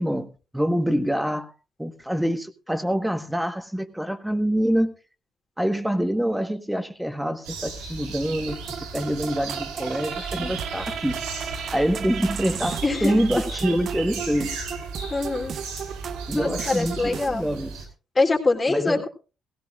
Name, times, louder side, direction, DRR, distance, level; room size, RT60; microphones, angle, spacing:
voice 1, 0.0-1.5 1.8-4.9 5.6-11.2 11.7-14.6 16.3-17.9 18.7-19.0, equal, 5° right, 1.4 m, -26 dB
sound 1, 7.4-17.9, right 4 dB, 85° right, 4.7 m, -36 dB
sound 2, 8.5-17.3, right 7 dB, 60° right, 1.0 m, -35 dB
voice 2, 12.8-13.1 15.1-15.6 16.3-17.5 18.1-19.1, left 3 dB, 30° left, 3.3 m, -24 dB
17.0 x 16.0 x 2.5 m
hypercardioid pair, 55°, 0 cm